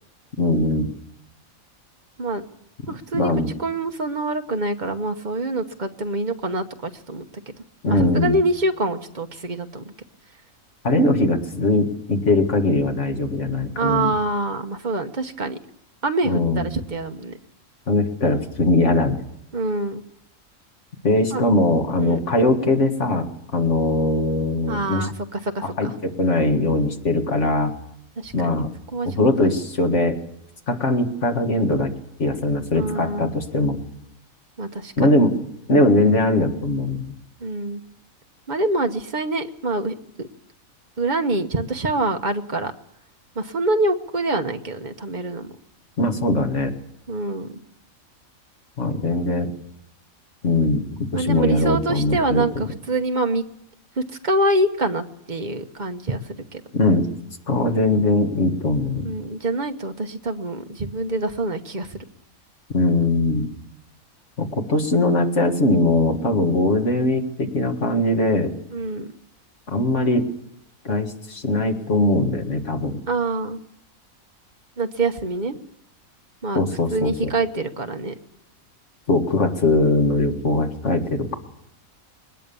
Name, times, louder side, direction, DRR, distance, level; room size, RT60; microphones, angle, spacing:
voice 1, 0.4-0.9 3.1-3.5 7.8-8.4 10.8-14.1 16.2-16.7 17.9-19.3 21.0-25.1 25.8-27.8 28.3-28.7 29.1-30.2 30.7-31.9 32.2-33.8 35.0-35.3 35.7-37.2 46.0-46.7 48.8-49.5 50.4-52.6 56.7-57.1 57.5-59.1 62.7-63.5 64.4-68.6 69.7-70.3 70.8-73.0 76.6-77.3 79.1-81.4, left 2 dB, 55° left, 4 dB, 2.2 m, -21 dB
voice 2, 2.9-3.3 3.6-7.5 7.9-9.8 13.8-15.6 16.0-17.4 19.5-20.0 21.3-21.4 22.0-22.2 24.7-25.9 28.2-28.6 28.9-29.1 29.4-29.5 32.7-33.3 34.6-35.1 37.4-37.8 38.5-40.3 41.0-42.7 43.3-45.5 47.1-47.5 51.1-53.4 54.0-56.6 59.0-62.0 68.7-69.1 73.1-73.6 74.8-75.6 76.4-76.6 76.9-78.1, right 2 dB, 35° right, 6 dB, 1.2 m, -25 dB
21.0 x 19.0 x 7.0 m, 0.77 s
omnidirectional pair, 1.5 m